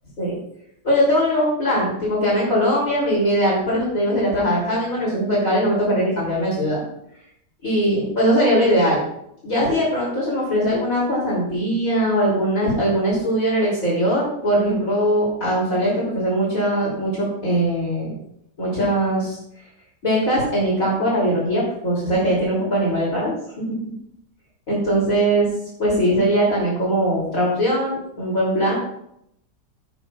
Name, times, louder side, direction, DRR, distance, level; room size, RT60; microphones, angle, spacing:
voice 1, 0.8-6.8 7.6-9.0 9.4-18.1 18.6-19.4 20.0-23.3 24.7-25.5 25.8-28.8, equal, 50° left, -6 dB, 3.4 m, -20 dB
16.0 x 10.5 x 2.4 m, 0.75 s
omnidirectional pair, 1.9 m